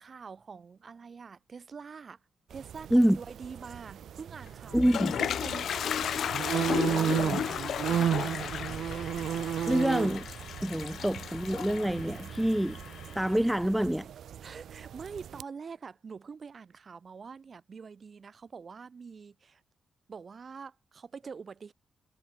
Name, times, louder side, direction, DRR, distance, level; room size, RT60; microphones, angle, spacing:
voice 1, 0.0-2.2 2.5-8.6 10.7-11.0 14.4-19.6 20.1-21.7, right 5 dB, 35° right, 8.0 m, -45 dB
sound 1, 2.5-15.4, right 9 dB, 70° right, 0.8 m, -34 dB
Toilet flush, 4.5-13.3, left 9 dB, 60° left, 0.5 m, -34 dB
voice 2, 4.7-5.2 7.3-7.4 9.7-10.3 10.6-12.8 13.1-14.1, right 1 dB, 5° right, 0.7 m, -26 dB
wide cardioid pair, 155°, 0 cm